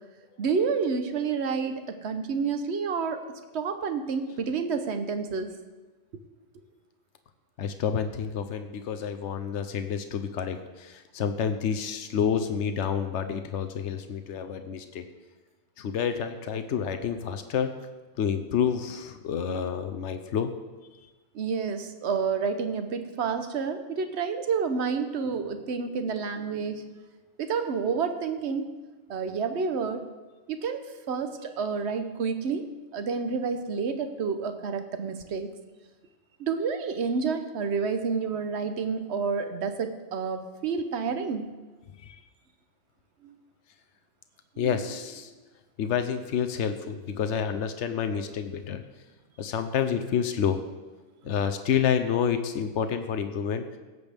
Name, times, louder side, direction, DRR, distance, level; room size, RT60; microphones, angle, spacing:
voice 1, 0.4-3.3 3.5-5.5 21.3-26.8 27.4-28.7 29.1-30.1 30.5-35.5 36.4-41.5 43.2-43.3 44.6-44.8, right 5 dB, 70° right, 8 dB, 1.1 m, -29 dB
voice 2, 7.6-15.0 15.8-17.7 18.2-20.5 42.0-42.2 44.6-45.3 45.8-48.8 49.4-50.6 51.2-53.6, left 7 dB, 85° left, 8 dB, 1.0 m, -29 dB
17.5 x 8.0 x 3.5 m, 1.3 s
omnidirectional pair, 1.2 m